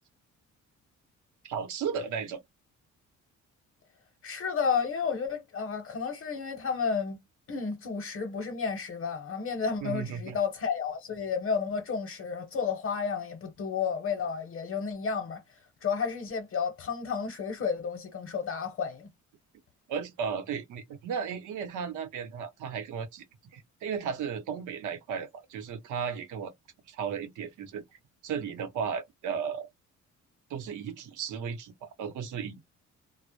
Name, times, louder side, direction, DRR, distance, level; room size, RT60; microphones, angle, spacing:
voice 1, 1.4-2.4 9.8-10.4 19.9-23.2 23.5-26.5 26.9-27.8 28.2-29.7 30.5-32.7, right 7 dB, 80° right, 0.8 m, -35 dB
voice 2, 4.2-7.2 7.5-19.1, left 6 dB, 50° left, 0.8 m, -32 dB
2.1 x 2.0 x 2.9 m
cardioid pair, 90°, 30 cm